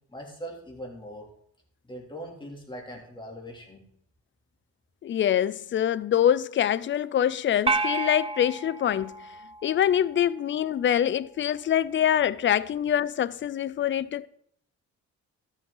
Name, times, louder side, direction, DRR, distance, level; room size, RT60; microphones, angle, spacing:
voice 1, 0.1-1.3 1.8-3.8, equal, 15° left, 3.2 m, -41 dB
voice 2, 5.0-9.3 9.6-14.3, left 10 dB, 40° left, 0.5 m, -25 dB
sound 1, 7.7-10.1, right 3 dB, 20° right, 0.6 m, -30 dB
13.0 x 7.3 x 4.0 m
cardioid pair, 90°, 30 cm